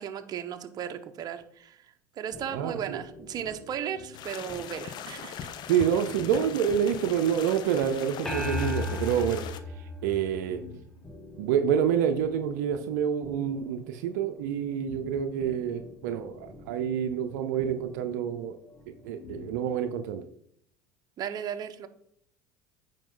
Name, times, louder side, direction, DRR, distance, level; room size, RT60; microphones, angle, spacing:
voice 1, 0.0-1.8 2.2-5.5 21.2-21.9, right 8 dB, 45° right, 7 dB, 1.0 m, -36 dB
sound 1, 2.3-19.8, left 3 dB, 25° left, 2.0 m, -49 dB
voice 2, 2.5-3.0 5.7-9.4 9.8-10.6 11.4-18.6 18.9-20.2, right 8 dB, 75° right, 7 dB, 0.6 m, -28 dB
sound 2, 4.1-9.6, left 9 dB, 50° left, 0.8 m, -40 dB
sound 3, 8.3-10.9, left 2 dB, 5° left, 1.8 m, -33 dB
9.1 x 5.4 x 3.8 m, 0.68 s
hypercardioid pair, 85°, 9 cm